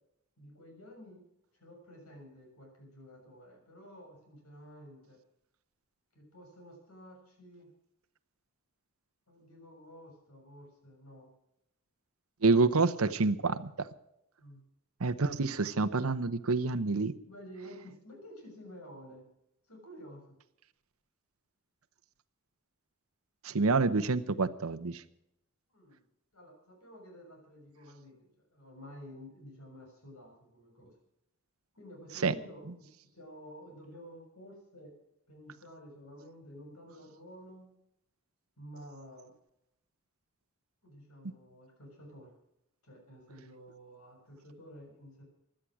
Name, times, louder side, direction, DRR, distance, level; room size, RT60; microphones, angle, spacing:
voice 1, 0.4-1.2 1.6-5.2 6.1-7.7 9.3-11.3 14.4-14.6 17.3-19.3 19.7-20.4 25.7-26.0 26.3-30.9 31.7-32.9 33.1-34.9 35.3-37.7 38.6-39.3 40.8-42.3 42.8-45.2, equal, 90° left, 2 dB, 6.7 m, -51 dB
voice 2, 12.4-13.9 15.0-17.1 23.4-25.0 32.2-32.3, right 3 dB, 75° right, 10 dB, 0.9 m, -27 dB
16.5 x 11.5 x 6.2 m, 0.80 s
head